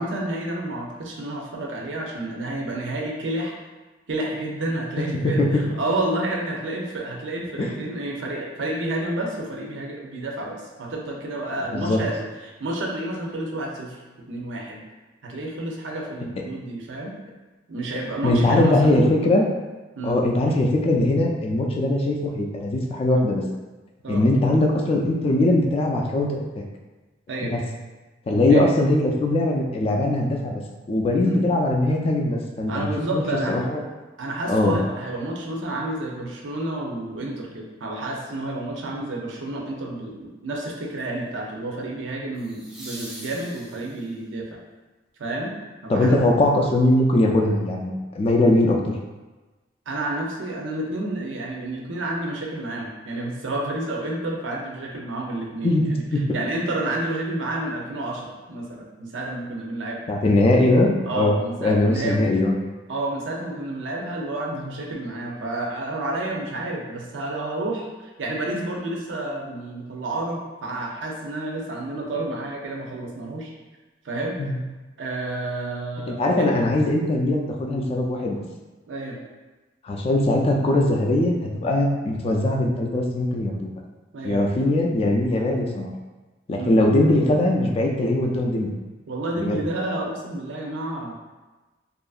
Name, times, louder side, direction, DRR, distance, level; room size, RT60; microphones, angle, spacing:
voice 1, 0.0-3.6 4.1-12.1 12.4-14.0 14.3-14.8 15.2-17.2 17.7-19.0 20.0-20.2 24.0-24.3 27.3-27.5 28.5-28.6 31.2-31.4 32.7-33.6 34.2-44.6 45.2-45.6 45.8-46.2 49.9-56.0 56.3-60.0 61.0-62.3 62.9-73.5 74.0-74.4 75.0-76.5 78.9-79.2 84.1-84.4 86.6-86.8 89.1-91.1, right 2 dB, 90° right, -1 dB, 0.5 m, -30 dB
voice 2, 5.1-5.8 7.6-7.8 11.7-12.0 18.2-19.4 20.0-23.4 24.1-26.6 27.4-27.6 28.3-30.6 30.9-33.2 33.5-33.8 34.5-34.8 45.9-48.9 55.6-56.4 60.1-62.6 74.4-74.6 76.1-78.4 79.8-83.7 84.2-85.9 86.5-88.7 89.3-89.6, left 1 dB, 30° left, 0 dB, 0.3 m, -21 dB
sound 1, 39.3-39.7 42.3-44.2 47.1-47.2, right 1 dB, 5° right, 0.6 m, -42 dB
2.8 x 2.4 x 2.3 m, 1.2 s
head